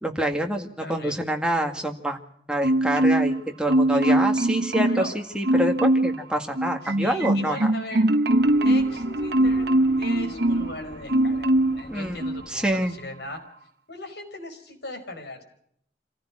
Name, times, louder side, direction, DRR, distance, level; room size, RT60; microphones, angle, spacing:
voice 1, 0.0-2.2 2.5-7.6 11.9-12.2 12.5-12.9, right 1 dB, 5° right, 2 dB, 2.1 m, -26 dB
voice 2, 0.8-1.2 3.9-4.3 4.9-5.1 6.8-8.1 8.6-9.7 10.0-13.4 13.9-15.4, left 2 dB, 70° left, 4 dB, 5.2 m, -39 dB
Marimba xylophone, 2.6-3.4 3.7-5.1 5.4-6.2 6.6-10.7 11.1-11.8 12.2-12.4, right 1 dB, 60° right, 0.9 m, -22 dB
sound 1, 8.3-13.2, left 1 dB, 35° left, 1.1 m, -41 dB
26.5 x 16.0 x 6.2 m, 0.68 s
head